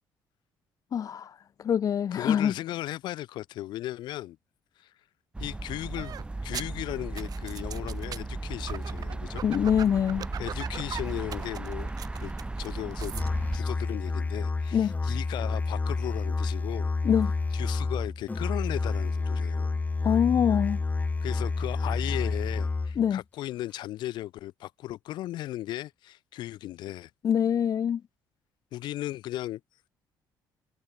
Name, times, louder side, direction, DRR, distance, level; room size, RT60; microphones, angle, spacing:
voice 1, 0.9-2.5 9.4-10.3 14.7-14.9 17.0-17.3 20.0-20.8 23.0-23.2 27.2-28.0, left 8 dB, 50° left, 2.1 m, -24 dB
voice 2, 2.1-4.4 4.8-4.9 5.4-6.1 6.4-9.4 10.4-12.3 12.6-13.1 13.5-16.9 17.5-19.8 21.2-27.1 28.7-29.6, left 15 dB, 75° left, 5.3 m, -36 dB
sound 1, 5.3-13.6, right 2 dB, 15° right, 2.2 m, -36 dB
sound 2, 6.0-13.3, right 9 dB, 55° right, 2.9 m, -41 dB
Musical instrument, 13.1-23.1, left 3 dB, 20° left, 1.5 m, -29 dB
cardioid pair, 105°, 8 cm